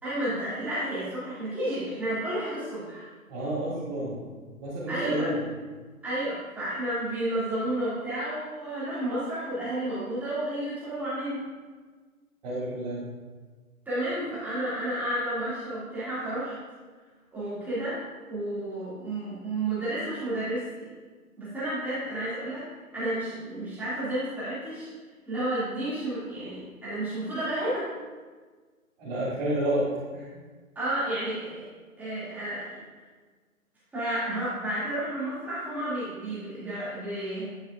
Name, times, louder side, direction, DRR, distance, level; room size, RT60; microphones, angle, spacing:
voice 1, 0.0-3.1 4.9-5.3 6.0-11.4 13.9-16.6 17.3-18.0 18.3-20.9 21.4-22.7 22.9-24.9 25.3-27.9 30.7-31.6 32.0-32.6 33.9-37.5, right 1 dB, 5° right, -12 dB, 2.4 m, -31 dB
voice 2, 3.3-4.2 4.6-5.4 12.4-13.0 29.0-30.3, right 1 dB, 30° right, -12 dB, 2.4 m, -30 dB
11.5 x 5.7 x 2.5 m, 1.4 s
figure-of-eight pair, 140°, 44 cm